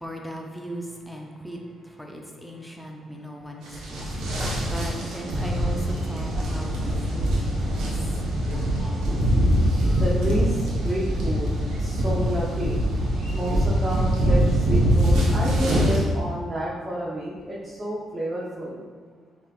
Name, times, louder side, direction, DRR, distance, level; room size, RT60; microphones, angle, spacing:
voice 1, 0.0-8.1, right 1 dB, ahead, 0 dB, 0.6 m, -38 dB
sound 1, 3.7-16.0, equal, 85° right, 1.1 m, -23 dB
voice 2, 10.0-11.5 11.8-12.8 13.3-18.8, right 1 dB, 30° right, -7 dB, 0.9 m, -30 dB
5.5 x 3.2 x 2.5 m, 1.5 s
cardioid pair, 90°, 0 cm